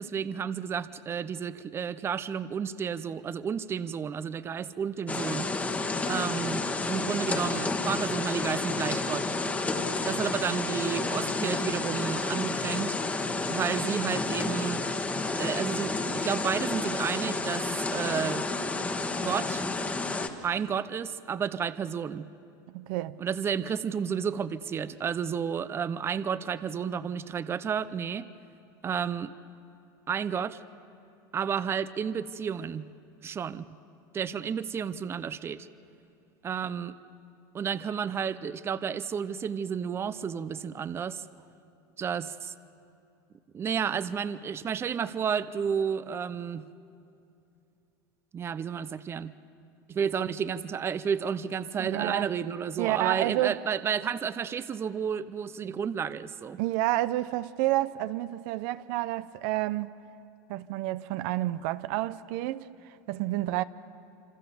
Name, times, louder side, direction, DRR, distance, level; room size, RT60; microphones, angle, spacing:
voice 1, 0.0-5.5 6.1-9.3 10.0-13.0 13.5-14.8 15.4-18.5 19.2-19.6 20.4-22.3 23.2-28.3 28.8-29.3 30.1-30.6 31.3-32.9 33.2-33.6 34.1-35.7 36.4-36.9 37.5-41.2 42.0-42.5 43.5-46.7 48.3-49.3 49.9-56.6, right 7 dB, 25° right, 0.6 m, -31 dB
sound 1, 5.1-20.3, left 3 dB, 15° left, 1.4 m, -30 dB
voice 2, 22.7-23.2 51.8-52.3 52.8-53.6 56.6-60.0 60.5-63.6, right 17 dB, 65° right, 0.6 m, -29 dB
26.5 x 25.5 x 7.0 m
supercardioid pair, 125°, 10 cm